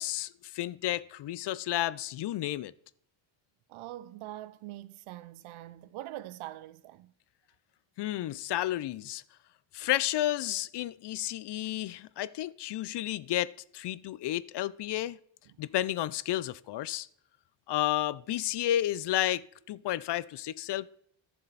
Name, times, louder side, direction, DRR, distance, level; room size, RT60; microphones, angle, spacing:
voice 1, 0.0-2.7 8.0-9.2 9.7-15.2 15.6-17.1 17.7-20.9, left 13 dB, 60° left, 0.5 m, -32 dB
voice 2, 3.7-7.1 15.5-15.6, right 14 dB, 90° right, 0.6 m, -43 dB
11.5 x 6.9 x 4.0 m
cardioid pair, 85°, 47 cm